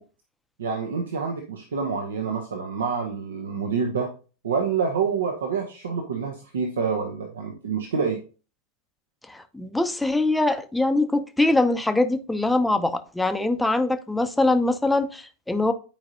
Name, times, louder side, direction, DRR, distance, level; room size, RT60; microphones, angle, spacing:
voice 1, 0.6-4.1 4.4-8.2, right 5 dB, 65° right, 1.0 m, -27 dB
voice 2, 9.3-15.7, left 2 dB, 5° left, 0.7 m, -23 dB
10.5 x 5.0 x 2.8 m
figure-of-eight pair, 90°, 0 cm